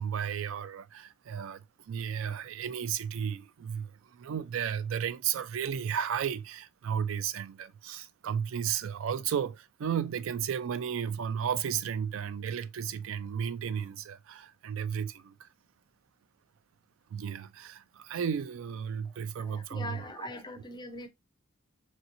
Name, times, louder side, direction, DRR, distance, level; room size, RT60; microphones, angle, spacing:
voice 1, 0.0-15.5 17.1-20.3, right 8 dB, 65° right, 0.3 m, -34 dB
voice 2, 19.4-21.1, left 2 dB, 20° left, 0.5 m, -42 dB
3.0 x 2.9 x 2.5 m
head